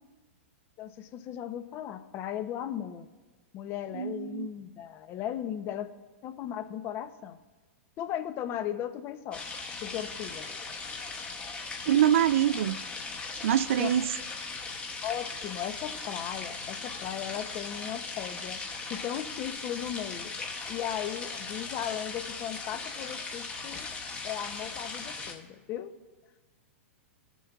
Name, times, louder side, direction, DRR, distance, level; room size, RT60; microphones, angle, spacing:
voice 1, 0.8-3.1 3.5-5.9 6.2-7.4 8.0-9.4 9.8-10.5 13.8-14.1 15.0-18.6 18.9-20.3 20.7-23.9 24.2-25.9, left 10 dB, 35° left, 0.7 m, -36 dB
voice 2, 4.0-4.5 11.9-12.8 13.4-14.1, right 10 dB, 70° right, 0.3 m, -24 dB
sound 1, 9.3-25.3, left 4 dB, 15° left, 1.3 m, -39 dB
18.5 x 7.1 x 2.4 m
hypercardioid pair, 130°, 7 cm